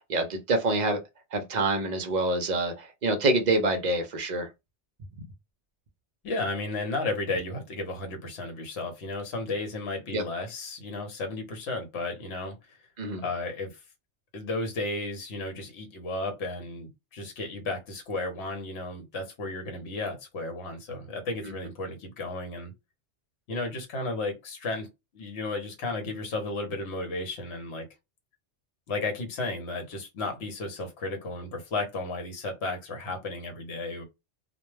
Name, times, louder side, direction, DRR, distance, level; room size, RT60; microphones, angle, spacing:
voice 1, 0.1-1.0 1.3-4.5 10.1-10.2 13.0-13.2, right 2 dB, 50° right, 0.5 m, -26 dB
voice 2, 6.2-12.6 13.2-13.8 14.3-22.7 23.5-24.9 25.1-27.9 28.9-34.0, left 2 dB, 65° left, 1.0 m, -33 dB
2.2 x 2.1 x 3.1 m
omnidirectional pair, 1.2 m